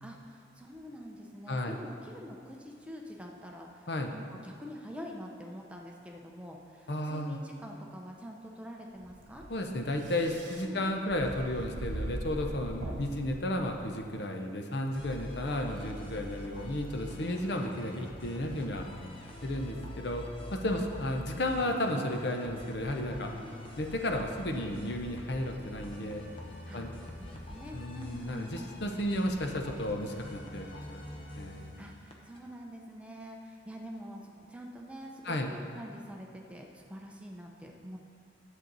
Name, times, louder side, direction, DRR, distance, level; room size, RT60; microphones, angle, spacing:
voice 1, 0.0-9.4 10.6-10.8 12.8-13.0 17.3-17.6 20.7-21.1 23.3-23.6 26.7-26.8 27.2-28.7 31.8-38.0, equal, 5° right, 0 dB, 0.6 m, -46 dB
voice 2, 6.9-7.4 9.5-18.9 19.4-20.3 20.5-23.3 23.8-26.2 26.7-26.9 27.7-31.1 31.3-31.7 35.2-35.5, left 1 dB, 60° left, 3 dB, 0.8 m, -33 dB
sound 1, 9.0-14.1, right 1 dB, 75° right, 1.0 m, -41 dB
sound 2, 14.9-32.4, left 1 dB, 30° left, 0.9 m, -45 dB
10.5 x 7.6 x 4.0 m, 2.3 s
head